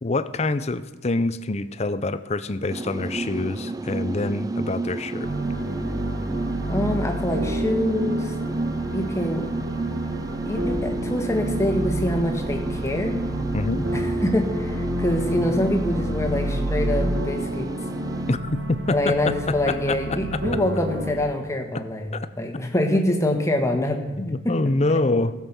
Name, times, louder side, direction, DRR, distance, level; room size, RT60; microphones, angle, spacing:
voice 1, 0.0-5.3 13.5-13.9 18.3-18.4 18.7-19.1 19.5-20.0 20.3-20.6 24.2-25.3, left 2 dB, 35° left, 13 dB, 0.6 m, -25 dB
sound 1, 2.7-18.4, right 3 dB, 20° right, 0.4 m, -31 dB
sound 2, 5.2-21.1, right 1 dB, 85° right, 1.9 m, -29 dB
voice 2, 6.7-8.3 8.9-9.5 10.4-13.2 13.9-17.7 18.9-22.1 22.4-24.5 24.9-25.0, left 1 dB, 15° left, 3 dB, 1.5 m, -25 dB
15.0 x 7.4 x 6.1 m, 1.2 s
head